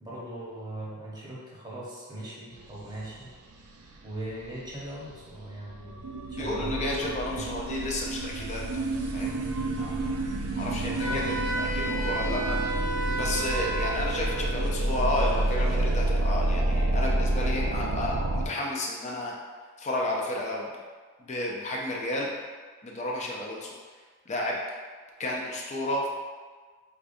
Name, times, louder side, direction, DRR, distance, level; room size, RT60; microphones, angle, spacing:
voice 1, 0.0-3.3 4.0-7.5 10.6-11.2, right 1 dB, 20° right, -7 dB, 0.8 m, -40 dB
sound 1, 2.6-18.5, right 1 dB, 75° right, 0.4 m, -29 dB
voice 2, 6.3-8.6 9.1-9.3 9.8-10.0 10.6-12.7 13.1-19.3 19.8-20.7 21.2-22.3 22.8-23.7 24.3-24.6 25.2-26.1, left 1 dB, 30° left, -2 dB, 0.4 m, -32 dB
Wind instrument woodwind instrument, 11.0-14.4, right 1 dB, 80° left, 1.0 m, -32 dB
4.8 x 2.2 x 2.5 m, 1.5 s
head